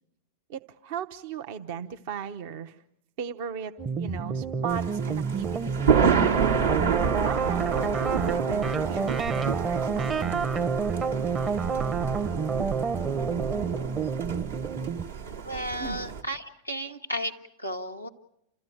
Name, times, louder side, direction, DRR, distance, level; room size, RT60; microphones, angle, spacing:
voice 1, 0.5-2.8 3.2-6.4 7.2-10.7 15.8-16.0, right 7 dB, 50° right, 7 dB, 0.8 m, -37 dB
sound 1, 3.8-15.0, right 5 dB, 25° right, 0.9 m, -28 dB
Thunder, 4.7-16.2, right 6 dB, 65° right, 1.4 m, -29 dB
voice 2, 15.4-17.3 17.6-18.1, equal, 90° right, 4 dB, 1.5 m, -33 dB
29.5 x 14.0 x 9.2 m, 0.83 s
figure-of-eight pair, 90°, 0 cm